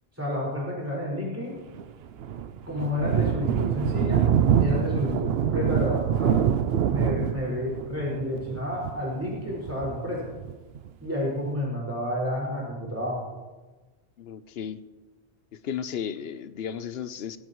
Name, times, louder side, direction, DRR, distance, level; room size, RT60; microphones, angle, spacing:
voice 1, 0.1-1.5 2.6-4.3 4.6-6.4 6.9-10.3 11.0-13.2, left 1 dB, 15° right, -6 dB, 5.3 m, -30 dB
Thunder, 1.7-10.9, right 9 dB, 75° right, 0.8 m, -25 dB
voice 2, 14.2-14.8 15.6-17.4, left 8 dB, 75° left, 13 dB, 0.9 m, -34 dB
17.5 x 16.5 x 3.1 m, 1.2 s
omnidirectional pair, 1.0 m